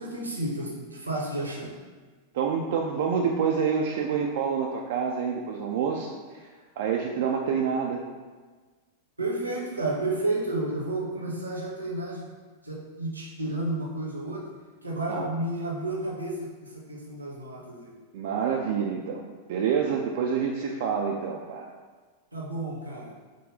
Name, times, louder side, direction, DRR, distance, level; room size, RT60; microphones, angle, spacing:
voice 1, 0.0-1.7 9.2-12.3 12.6-14.5 14.8-17.9 22.3-23.1, right 2 dB, 80° right, -3 dB, 0.8 m, -31 dB
voice 2, 2.3-6.1 6.4-6.5 6.8-8.0 15.1-15.3 18.1-21.7, right 6 dB, 55° right, 0 dB, 0.3 m, -27 dB
5.0 x 2.1 x 3.8 m, 1.4 s
figure-of-eight pair, 90°, 0 cm